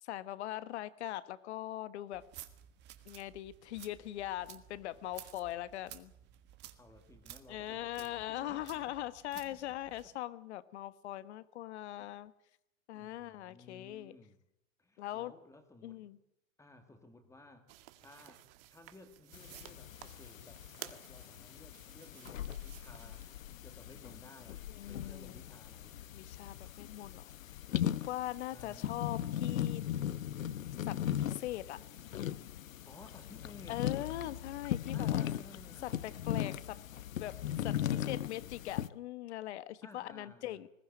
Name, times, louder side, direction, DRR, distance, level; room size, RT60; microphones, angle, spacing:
voice 1, 0.0-2.2 3.0-6.1 7.5-12.3 12.9-14.1 15.0-15.3 15.8-16.2 24.7-25.4 26.1-29.8 30.8-31.8 33.7-35.2 35.8-36.8 37.2-40.7, left 14 dB, 55° left, 15 dB, 1.4 m, -41 dB
sound 1, 2.1-10.1, right 12 dB, 25° right, 1.6 m, -54 dB
voice 2, 6.8-9.0 9.3-10.1 11.9-12.1 12.9-14.4 14.8-16.1 16.6-17.7 18.0-26.0 28.5-29.0 32.9-33.8 34.9-36.0 39.8-40.7, left 3 dB, 5° left, 7 dB, 2.2 m, -57 dB
sound 2, 17.7-23.4, right 15 dB, 45° right, 1.6 m, -54 dB
sound 3, 19.3-38.9, left 11 dB, 85° left, 0.9 m, -38 dB
20.5 x 15.5 x 9.3 m, 0.84 s
hypercardioid pair, 140°, 39 cm